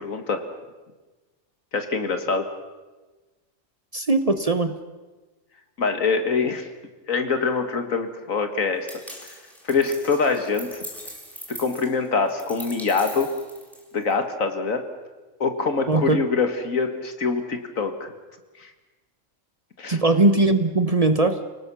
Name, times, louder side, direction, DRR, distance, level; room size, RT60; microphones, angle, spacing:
voice 1, 0.0-0.4 1.7-2.5 5.8-6.7 7.1-8.9 9.6-10.8 11.5-13.3 13.9-14.8 15.4-18.1 18.6-18.7 19.8-20.0, left 4 dB, 85° left, 7 dB, 2.3 m, -24 dB
voice 2, 3.9-4.7 15.9-16.2 19.9-21.4, right 2 dB, 30° right, 10 dB, 0.9 m, -20 dB
sound 1, 8.9-14.1, equal, ahead, 4.2 m, -41 dB
29.0 x 18.5 x 6.2 m, 1.2 s
omnidirectional pair, 1.4 m